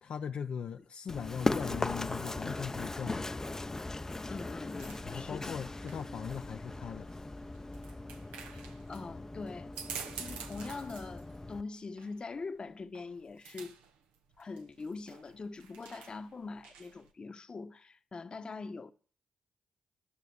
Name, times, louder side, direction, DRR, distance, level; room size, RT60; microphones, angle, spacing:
voice 1, 0.0-3.4 5.0-7.1, left 7 dB, 65° left, 0.6 m, -39 dB
Run, 1.1-11.6, left 2 dB, 20° left, 0.7 m, -38 dB
voice 2, 4.3-5.6 8.5-9.7 10.1-13.8 14.4-18.9, left 4 dB, 45° left, 1.0 m, -43 dB
sound 1, 4.8-17.1, right 7 dB, 90° right, 1.1 m, -50 dB
11.5 x 6.7 x 8.5 m
supercardioid pair, 45°, 2 cm